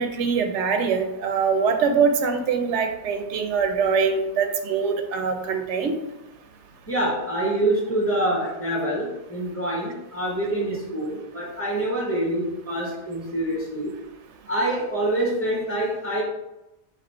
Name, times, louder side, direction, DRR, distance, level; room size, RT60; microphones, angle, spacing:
voice 1, 0.0-5.9, right 5 dB, 80° right, 6 dB, 0.9 m, -23 dB
voice 2, 6.9-13.9 14.5-16.2, right 1 dB, 10° left, -5 dB, 1.3 m, -26 dB
4.1 x 2.7 x 4.3 m, 0.93 s
omnidirectional pair, 1.2 m